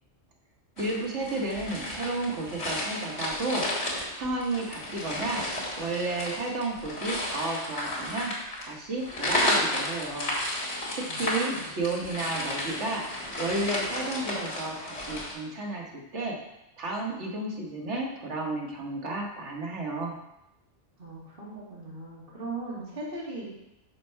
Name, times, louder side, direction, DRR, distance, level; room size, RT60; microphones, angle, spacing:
sound 1, 0.8-15.3, left 1 dB, 70° left, 2.2 m, -32 dB
voice 1, 0.8-5.4 5.8-8.3 8.6-10.3 10.9-16.3 16.8-20.2, right 2 dB, 85° right, -1 dB, 1.6 m, -32 dB
voice 2, 11.1-11.7 21.0-23.4, right 2 dB, 50° right, -6 dB, 2.5 m, -38 dB
6.7 x 4.5 x 5.6 m, 0.89 s
omnidirectional pair, 1.2 m